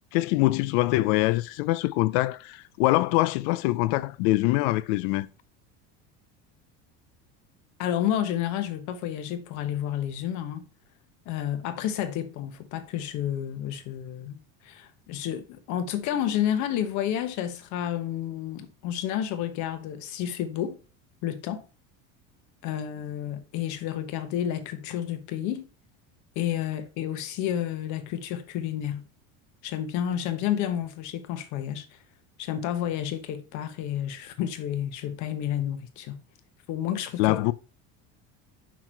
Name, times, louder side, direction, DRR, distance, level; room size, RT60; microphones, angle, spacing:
voice 1, 0.1-5.3 37.2-37.5, left 18 dB, 80° left, 0.5 m, -24 dB
voice 2, 7.8-10.6 11.3-20.8 21.2-21.6 22.6-25.7 26.3-29.1 29.6-32.0 32.4-36.2 36.7-37.4, left 10 dB, 60° left, 1.2 m, -30 dB
5.8 x 4.6 x 4.5 m
cardioid pair, 155°, 34 cm